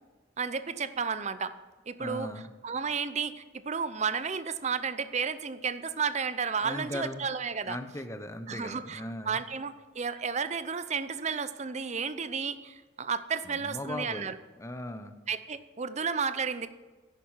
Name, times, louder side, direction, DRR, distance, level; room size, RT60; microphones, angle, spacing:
voice 1, 0.4-1.5 1.9-2.3 2.6-7.8 8.5-9.0 9.3-14.3 15.3-16.7, right 6 dB, 35° right, 13 dB, 0.6 m, -32 dB
voice 2, 2.0-2.5 6.6-7.3 7.7-9.4 13.4-14.3 14.6-15.2, left 1 dB, 15° left, 8 dB, 0.9 m, -38 dB
11.0 x 10.5 x 7.4 m, 1.3 s
head